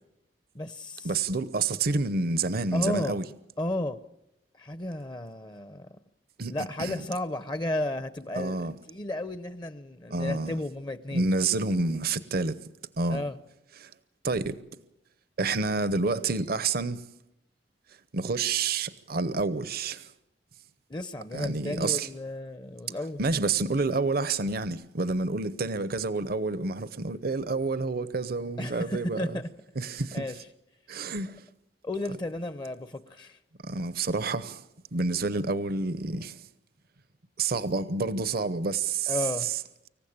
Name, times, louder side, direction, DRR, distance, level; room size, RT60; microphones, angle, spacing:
voice 1, 0.5-1.1 2.7-3.2 3.6-4.0 4.5-6.0 6.5-11.2 13.1-13.4 20.9-23.2 28.6-29.5 29.9-30.4 31.8-33.4 39.1-39.5, left 1 dB, 25° left, 0.7 m, -33 dB
voice 2, 1.0-3.2 6.4-7.1 8.4-8.7 10.1-10.6 11.1-12.6 13.0-13.2 13.8-13.9 14.2-14.6 15.4-17.1 18.1-20.1 21.3-22.1 23.2-29.4 29.8-30.3 30.9-31.5 33.6-34.6 34.9-36.5 37.4-39.2 39.4-39.6, right 3 dB, 55° right, 0.8 m, -29 dB
25.5 x 15.5 x 8.8 m
head